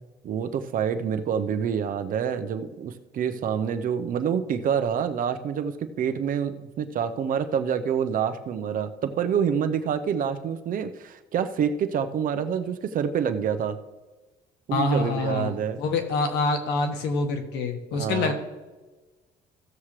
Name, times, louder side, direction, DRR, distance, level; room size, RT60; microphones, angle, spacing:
voice 1, 0.2-13.8 14.7-15.8 18.0-18.3, right 7 dB, 55° right, 8 dB, 0.8 m, -27 dB
voice 2, 14.7-18.3, left 3 dB, 90° left, 6 dB, 1.5 m, -26 dB
15.5 x 7.3 x 3.3 m, 1.2 s
cardioid pair, 110°, 17 cm